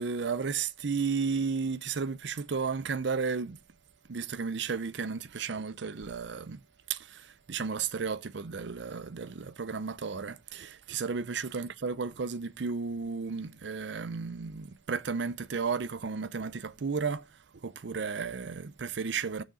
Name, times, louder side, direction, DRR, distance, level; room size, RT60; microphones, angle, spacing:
voice 1, 0.0-3.6 4.1-6.6 6.9-19.4, right 5 dB, 65° right, 0.6 m, -33 dB
6.6 x 6.3 x 5.4 m
head